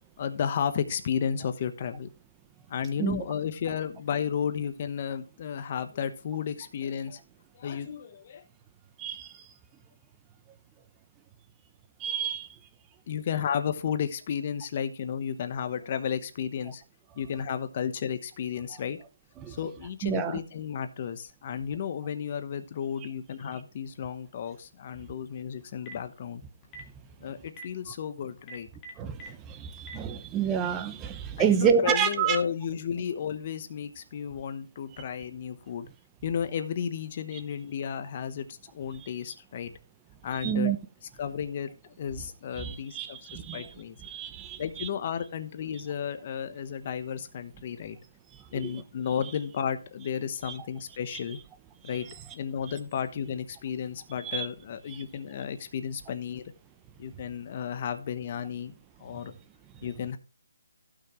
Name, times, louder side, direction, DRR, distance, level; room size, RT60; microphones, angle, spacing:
voice 1, 0.2-2.1 2.7-7.2 7.5-8.4 13.1-16.8 17.2-19.0 19.5-26.4 27.2-28.7 31.4-35.9 36.2-39.7 40.2-40.7 41.2-43.2 43.5-44.0 44.6-48.0 48.5-51.4 51.8-52.1 52.3-56.5 57.0-58.7 59.0-59.3 59.8-60.2, left 8 dB, 30° left, 0.9 m, -33 dB
voice 2, 12.0-12.5 19.4-19.5 20.0-20.4 29.0-32.4 40.4-40.8 42.6-43.7 44.0-44.9 54.2-54.5 54.9-55.0, right 8 dB, 10° right, 0.7 m, -28 dB
Telephone, 25.6-26.1 26.6-26.9 27.5-27.6 28.4-29.3 29.8-29.9, right 2 dB, 15° left, 1.5 m, -43 dB
15.5 x 6.0 x 3.1 m
hypercardioid pair, 170°, 0 cm